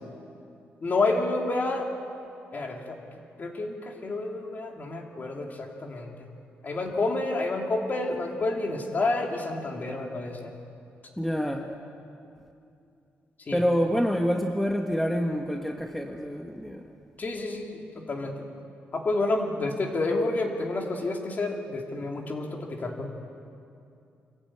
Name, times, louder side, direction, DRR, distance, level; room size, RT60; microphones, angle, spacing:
voice 1, 0.8-1.9 2.5-3.0 3.4-6.1 6.6-10.5 13.4-13.6 17.2-18.5 18.9-23.1, left 2 dB, 40° left, 1 dB, 3.1 m, -29 dB
voice 2, 11.2-11.7 13.5-16.8, equal, 5° left, 2 dB, 1.4 m, -27 dB
25.0 x 15.0 x 9.0 m, 2.6 s
cardioid pair, 100°, 4 cm